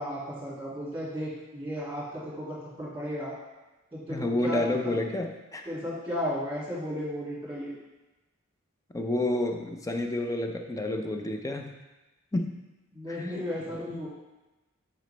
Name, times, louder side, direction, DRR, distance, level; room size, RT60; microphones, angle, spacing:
voice 1, 0.0-3.4 3.9-4.9 5.6-7.7 12.9-14.1, equal, 10° right, -8 dB, 2.4 m, -34 dB
voice 2, 4.1-5.7 8.9-11.7 12.3-12.6 13.1-13.3, left 1 dB, 15° left, 4 dB, 0.5 m, -30 dB
7.8 x 5.1 x 3.4 m, 1.1 s
head